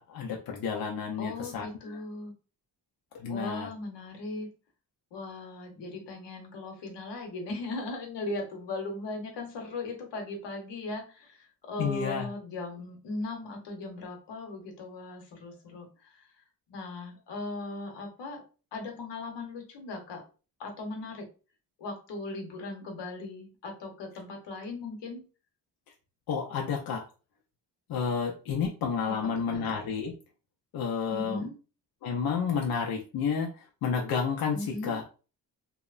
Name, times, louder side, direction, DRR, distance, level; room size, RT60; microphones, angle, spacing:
voice 1, 0.0-2.0 3.1-3.7 11.8-12.3 26.3-27.0 27.9-30.1 30.7-31.5 32.0-35.0, left 6 dB, 60° left, 0 dB, 0.5 m, -31 dB
voice 2, 1.2-2.3 3.3-4.5 5.1-16.3 16.7-18.4 18.7-20.2 20.6-21.3 21.8-25.2 29.0-29.6 31.1-31.5 34.5-35.0, left 2 dB, 75° left, 2 dB, 0.9 m, -38 dB
2.8 x 2.0 x 2.4 m, 0.35 s
cardioid pair, 125°, 42 cm